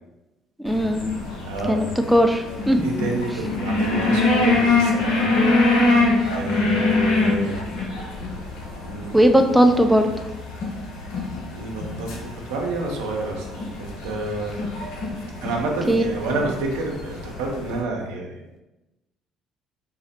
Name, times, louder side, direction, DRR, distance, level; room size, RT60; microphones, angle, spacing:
voice 1, 0.6-1.1 1.7-1.9 2.1-2.9 9.1-10.1 15.9-16.0, equal, 5° right, 5 dB, 0.4 m, -17 dB
sound 1, 0.7-17.8, left 2 dB, 70° left, 0.7 m, -25 dB
voice 2, 1.4-1.9 2.8-5.4 6.3-7.6 8.8-9.4 11.5-14.6 15.4-18.6, right 2 dB, 80° right, 0 dB, 0.6 m, -29 dB
3.7 x 2.1 x 4.2 m, 1.0 s
hypercardioid pair, 55°, 0 cm